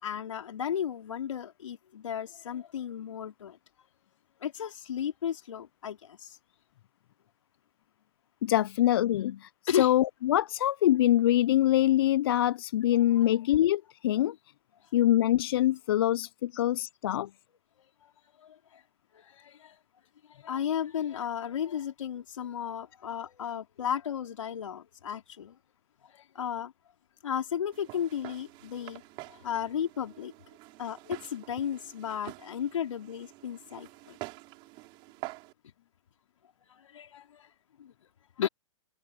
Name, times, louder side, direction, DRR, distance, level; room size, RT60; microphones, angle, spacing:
voice 1, 0.0-3.6 4.4-6.4 9.7-9.9 18.0-18.1 18.4-18.8 19.1-19.8 20.3-25.6 26.1-26.7 27.2-29.0 29.3-30.3 30.8-34.2 36.7-37.5 37.8-37.9 38.4-38.5, left 9 dB, 70° left, 4.4 m, -34 dB
voice 2, 8.4-14.4 14.9-17.3 38.4-38.5, left 13 dB, 45° left, 0.4 m, -25 dB
Walk footsteps, 27.7-35.5, right 24 dB, 30° right, 6.5 m, -47 dB
hypercardioid pair, 155°, 17 cm